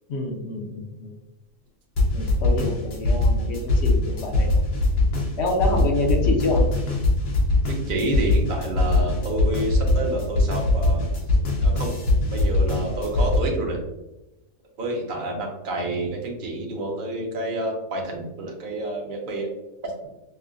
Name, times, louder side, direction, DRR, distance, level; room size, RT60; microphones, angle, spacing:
voice 1, 0.1-1.1 2.1-4.5 5.4-6.6, left 2 dB, 60° left, 1 dB, 0.7 m, -27 dB
sound 1, 2.0-13.4, left 2 dB, 80° left, 1.5 m, -21 dB
voice 2, 7.7-11.1 11.6-11.9 12.3-13.8 14.8-19.5 19.8-20.1, right 2 dB, 45° right, 0 dB, 0.8 m, -28 dB
5.4 x 2.1 x 2.4 m, 0.98 s
omnidirectional pair, 1.6 m